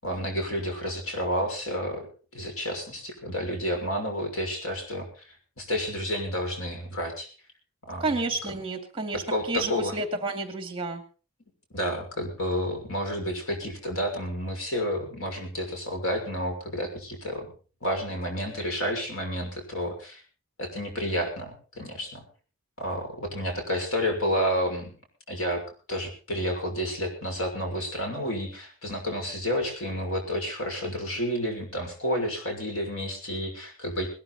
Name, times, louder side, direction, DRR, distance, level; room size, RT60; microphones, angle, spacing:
voice 1, 0.0-2.1 2.3-5.1 5.6-7.3 7.9-8.1 8.4-8.5 9.1-9.9 11.7-17.5 17.8-20.2 20.6-22.2 22.8-24.9 25.3-25.6 25.9-34.1, equal, 80° left, 3 dB, 6.3 m, -30 dB
voice 2, 8.0-9.2 9.5-11.0, right 3 dB, 25° right, 6 dB, 2.4 m, -30 dB
20.0 x 13.0 x 4.2 m, 0.37 s
head